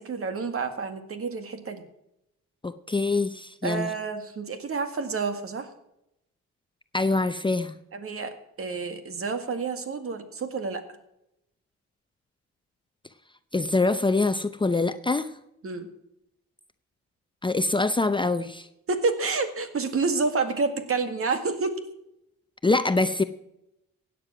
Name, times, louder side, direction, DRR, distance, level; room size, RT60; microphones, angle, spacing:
voice 1, 0.0-1.8 3.6-5.7 7.9-10.8 15.6-15.9 18.9-21.8, right 4 dB, 45° right, 8 dB, 2.0 m, -29 dB
voice 2, 2.6-3.9 6.9-7.7 13.5-15.3 17.4-18.7 22.6-23.2, left 3 dB, 15° left, 10 dB, 0.7 m, -24 dB
16.0 x 9.4 x 6.0 m, 0.83 s
cardioid pair, 90°, 30 cm